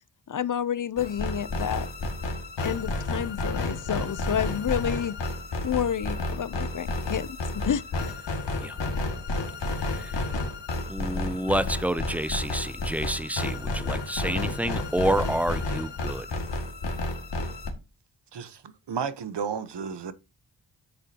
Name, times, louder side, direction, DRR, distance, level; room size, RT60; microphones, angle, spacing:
voice 1, 0.3-1.9 2.6-5.2 5.6-8.1, left 9 dB, 45° left, 0.6 m, -29 dB
sound 1, 1.0-17.7, left 2 dB, 75° left, 2.2 m, -31 dB
voice 2, 10.9-16.3, right 1 dB, 5° right, 0.5 m, -29 dB
voice 3, 18.3-20.1, right 6 dB, 70° right, 1.1 m, -33 dB
9.7 x 8.2 x 2.9 m
wide cardioid pair, 90°, 43 cm